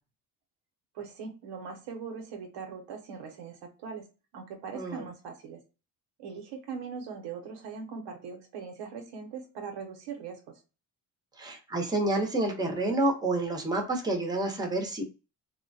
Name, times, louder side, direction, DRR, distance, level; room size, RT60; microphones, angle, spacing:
voice 1, 0.9-4.0 4.3-5.6 6.2-10.6, right 5 dB, 80° right, 2 dB, 0.9 m, -40 dB
voice 2, 4.7-5.0 11.4-15.0, right 2 dB, 10° right, 3 dB, 0.8 m, -29 dB
3.0 x 2.1 x 2.6 m, 0.31 s
supercardioid pair, 75°, 41 cm